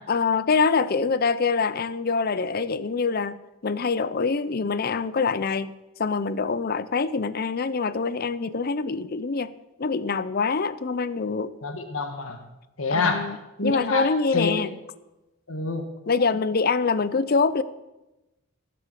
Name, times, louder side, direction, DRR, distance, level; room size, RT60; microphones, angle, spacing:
voice 1, 0.1-5.7 6.0-9.5 9.8-11.5 12.9-13.4 13.6-14.7 16.1-17.6, left 4 dB, 45° left, 16 dB, 0.5 m, -25 dB
voice 2, 11.6-12.4 12.8-13.3 13.6-14.6 15.5-15.9, left 3 dB, 70° left, 5 dB, 1.4 m, -27 dB
15.0 x 7.9 x 6.6 m, 1.0 s
head